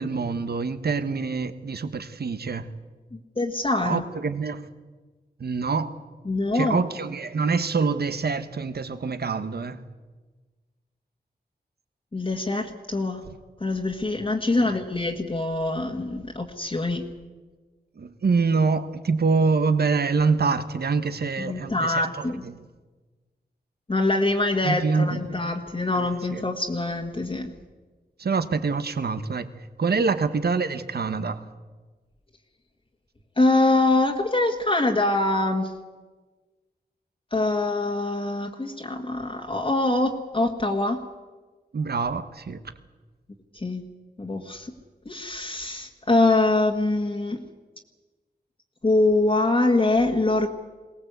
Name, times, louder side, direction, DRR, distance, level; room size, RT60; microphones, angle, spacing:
voice 1, 0.0-2.7 3.8-4.6 5.4-5.9 6.5-9.8 13.3-13.4 14.6-14.8 18.0-22.6 24.6-25.3 25.9-26.4 28.2-29.5 29.8-31.4 41.7-42.6, right 4 dB, 70° right, 11 dB, 1.4 m, -25 dB
voice 2, 3.1-4.0 6.2-6.8 12.1-13.2 13.6-17.0 21.4-22.4 23.9-27.5 33.4-35.7 37.3-41.0 43.5-43.8 44.2-44.7 45.0-47.4 48.8-50.5, left 2 dB, 30° left, 1 dB, 1.7 m, -24 dB
22.5 x 19.0 x 8.2 m, 1.3 s
wide cardioid pair, 95°, 17 cm